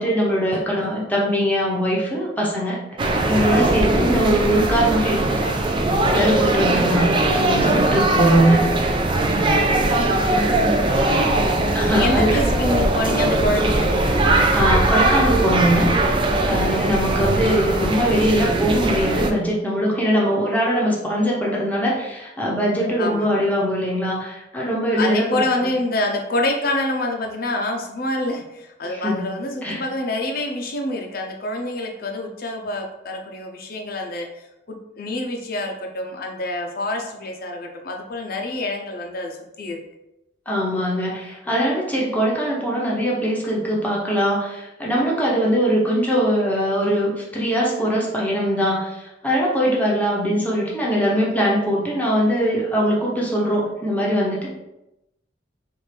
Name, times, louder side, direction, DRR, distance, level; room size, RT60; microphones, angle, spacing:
voice 1, 0.0-2.8 3.3-5.5 6.1-7.1 7.3-8.6 11.7-12.3 14.5-15.9 16.4-25.7 28.9-29.2 29.6-29.8 40.5-54.5, equal, 10° left, -4 dB, 0.9 m, -21 dB
sound 1, 3.0-19.3, right 2 dB, 25° right, 0.4 m, -20 dB
voice 2, 10.7-14.4 23.0-23.3 25.0-34.3 34.7-39.8, left 1 dB, 55° left, 2 dB, 0.6 m, -26 dB
4.4 x 2.5 x 3.3 m, 0.91 s
head